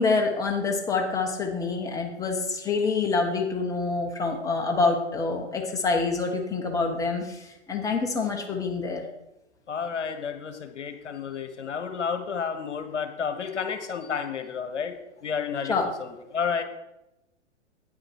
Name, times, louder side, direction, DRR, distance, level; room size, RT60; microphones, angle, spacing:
voice 1, 0.0-9.0 15.6-15.9, left 4 dB, 10° left, 2 dB, 1.1 m, -26 dB
voice 2, 9.7-14.9 15.2-15.7 16.0-16.6, left 6 dB, 75° left, 8 dB, 1.2 m, -31 dB
9.0 x 7.6 x 4.7 m, 0.91 s
figure-of-eight pair, 115°, 36 cm